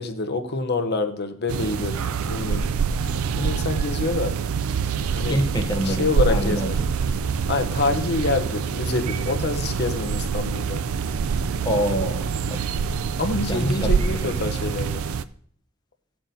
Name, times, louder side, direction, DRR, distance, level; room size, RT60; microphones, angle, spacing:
voice 1, 0.0-2.7 3.3-4.4 5.1-5.4 5.8-6.8 7.5-10.8 13.2-15.0, left 3 dB, 50° left, 7 dB, 0.9 m, -26 dB
sound 1, 1.5-15.2, right 6 dB, 70° right, 0.4 m, -25 dB
voice 2, 5.3-6.7 11.6-12.6 13.5-13.9 14.2-14.3, equal, 20° left, 6 dB, 0.9 m, -26 dB
18.5 x 7.7 x 2.8 m, 0.62 s
head